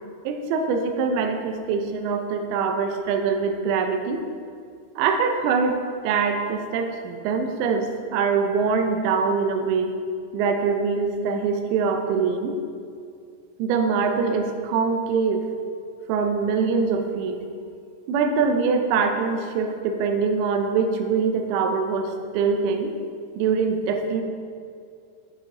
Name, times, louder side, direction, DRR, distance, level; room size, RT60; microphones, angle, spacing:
voice 1, 0.2-4.2 5.0-5.8 6.0-10.0 10.3-12.6 13.6-15.4 16.1-17.4 18.1-22.9 23.4-24.2, right 5 dB, 85° right, 5 dB, 2.9 m, -23 dB
11.0 x 5.3 x 3.7 m, 2.3 s
omnidirectional pair, 5.1 m